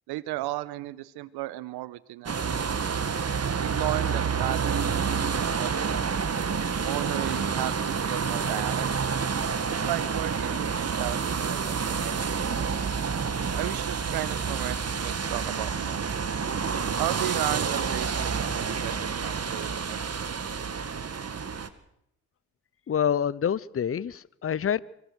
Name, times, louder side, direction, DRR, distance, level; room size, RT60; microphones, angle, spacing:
voice 1, 0.1-3.0 3.6-6.2 6.8-9.0 9.7-12.7 13.6-16.1 17.0-20.5, right 17 dB, 80° right, 19 dB, 1.1 m, -35 dB
sound 1, 2.3-21.7, right 6 dB, 40° right, 2.1 m, -29 dB
voice 2, 22.9-24.8, left 8 dB, 35° left, 22 dB, 0.8 m, -27 dB
25.0 x 18.5 x 6.3 m, 0.76 s
hypercardioid pair, 50°, 39 cm